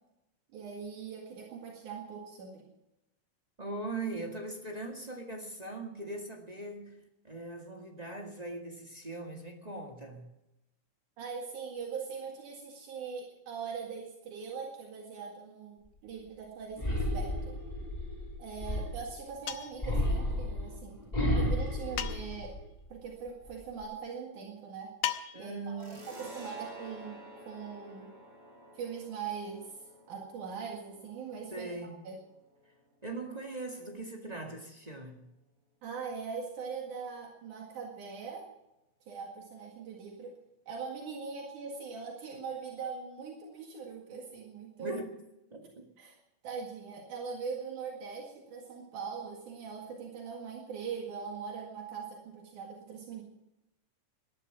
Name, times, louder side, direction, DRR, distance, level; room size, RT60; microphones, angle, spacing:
voice 1, 0.5-2.6 11.2-17.6 18.4-21.0 21.4-22.6 22.9-24.9 25.3-28.1 28.7-29.7 30.1-31.7 32.0-32.2 35.8-38.5 39.1-40.3 40.7-44.9 46.0-46.2 46.4-53.2, right 6 dB, 75° right, 3.4 m, -41 dB
voice 2, 3.6-10.3 25.3-26.1 31.5-32.0 33.0-35.3 44.8-45.2 45.5-45.8, right 2 dB, 20° right, 1.3 m, -40 dB
sound 1, 16.8-19.2 19.8-22.9 23.3-23.8, left 1 dB, 10° left, 3.2 m, -32 dB
sound 2, 19.5-19.9 22.0-22.5 25.0-25.6, left 11 dB, 70° left, 2.1 m, -36 dB
sound 3, 25.8-33.0, equal, 35° right, 4.7 m, -51 dB
20.0 x 11.5 x 6.0 m
omnidirectional pair, 3.6 m